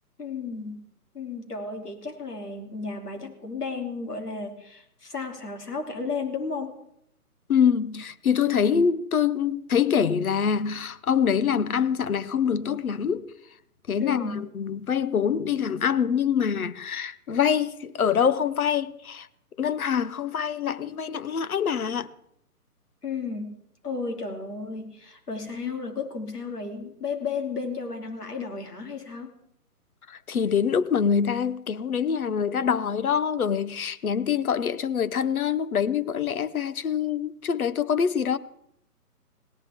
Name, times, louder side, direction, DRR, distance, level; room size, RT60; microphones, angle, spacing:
voice 1, 0.2-0.8 1.1-6.8 14.0-14.5 23.0-23.6 23.8-29.4, left 4 dB, 85° left, 3.3 m, -33 dB
voice 2, 7.5-13.6 13.9-19.3 19.6-22.1 30.1-38.4, left 7 dB, 65° left, 1.0 m, -25 dB
18.0 x 18.0 x 3.7 m
figure-of-eight pair, 145°, 46 cm